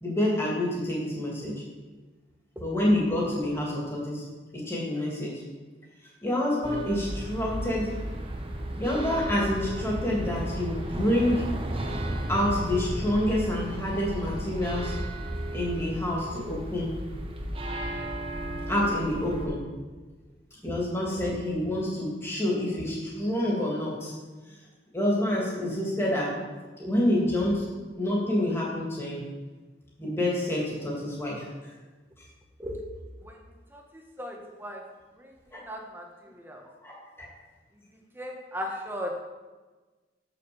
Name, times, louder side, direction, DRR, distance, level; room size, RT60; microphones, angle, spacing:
voice 1, 0.0-1.5 2.6-4.2 4.7-5.3 6.2-7.9 8.8-11.4 12.3-14.9 15.5-16.9 18.7-19.6 20.6-24.1 24.9-26.3 26.8-27.7 28.0-29.2 30.0-31.4 35.5-35.6 36.8-37.3 38.6-38.7, left 1 dB, 15° left, -4 dB, 2.7 m, -27 dB
sound 1, 6.6-19.5, right 1 dB, 30° right, 1.0 m, -34 dB
voice 2, 34.2-34.8 35.7-36.0 36.4-36.6 38.2-39.2, equal, 10° right, 1 dB, 1.3 m, -36 dB
7.5 x 7.0 x 7.1 m, 1.3 s
head